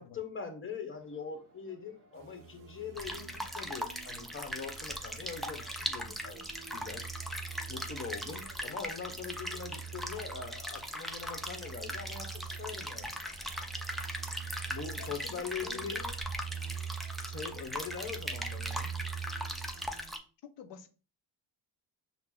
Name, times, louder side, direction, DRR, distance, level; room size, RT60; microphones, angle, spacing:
voice 1, 0.0-7.1 7.7-13.1 14.6-16.0 17.2-18.9, left 5 dB, 30° left, 1.0 m, -42 dB
sound 1, 0.9-20.2, right 2 dB, 30° right, 1.4 m, -62 dB
sound 2, 2.1-20.1, right 8 dB, 50° right, 0.4 m, -45 dB
sound 3, 3.0-20.2, equal, ahead, 0.5 m, -40 dB
voice 2, 15.0-16.2 20.4-20.9, left 7 dB, 80° left, 0.7 m, -49 dB
5.7 x 2.1 x 3.7 m
cardioid pair, 100°, 42 cm